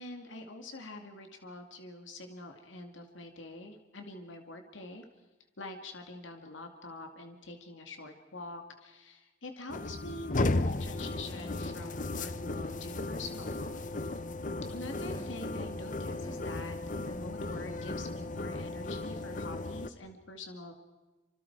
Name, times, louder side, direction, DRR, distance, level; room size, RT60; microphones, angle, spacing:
voice 1, 0.0-5.0 5.6-14.2 14.7-20.7, left 2 dB, 75° left, 4 dB, 2.3 m, -45 dB
sound 1, 9.7-19.9, left 2 dB, 40° left, 0.9 m, -35 dB
sound 2, 11.3-11.8 15.1-15.7 16.1-16.7, equal, 20° left, 1.3 m, -51 dB
28.0 x 26.0 x 4.8 m, 1.2 s
head